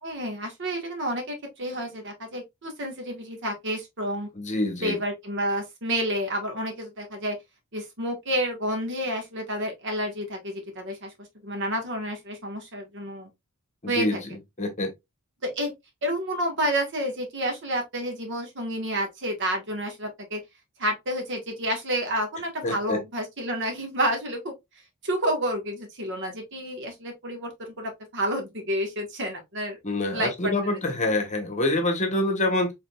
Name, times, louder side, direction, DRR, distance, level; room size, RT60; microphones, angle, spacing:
voice 1, 0.0-4.3 4.8-7.3 7.7-11.1 11.4-13.3 13.9-14.2 15.4-15.7 16.0-20.4 20.8-24.5 25.0-29.8 30.1-30.8, equal, 55° right, 1.4 m, -30 dB
voice 2, 4.3-5.0 13.8-14.9 22.6-23.0 29.8-32.7, left 2 dB, 35° left, 1.0 m, -26 dB
5.0 x 3.6 x 2.3 m
head